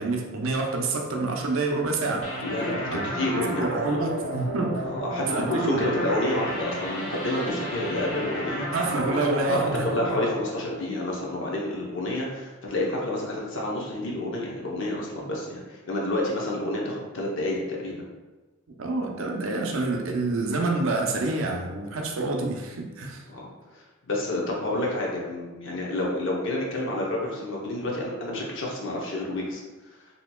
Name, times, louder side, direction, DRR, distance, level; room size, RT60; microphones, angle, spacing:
voice 1, 0.0-2.3 2.9-3.0 3.3-4.9 5.3-5.9 8.7-9.9 18.8-23.2, right 3 dB, 70° right, 2 dB, 0.5 m, -27 dB
sound 1, 2.2-11.6, right 1 dB, 85° left, 1.0 m, -33 dB
voice 2, 2.4-3.6 4.8-8.7 9.5-9.6 9.9-18.1 23.3-29.6, left 1 dB, 60° left, -2 dB, 0.8 m, -29 dB
4.2 x 2.8 x 2.2 m, 1.2 s
head